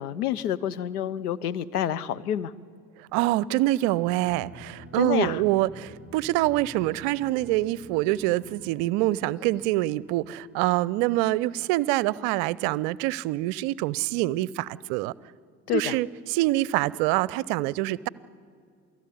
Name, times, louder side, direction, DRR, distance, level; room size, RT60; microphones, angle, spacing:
voice 1, 0.0-2.5 5.0-5.4 15.7-16.0, left 10 dB, 75° left, 16 dB, 0.9 m, -28 dB
voice 2, 3.1-15.1 15.7-18.1, right 17 dB, 55° right, 22 dB, 0.7 m, -25 dB
sound 1, 3.9-12.0, equal, 30° left, 4.2 m, -49 dB
28.0 x 18.0 x 9.6 m, 2.3 s
figure-of-eight pair, 60°, 46 cm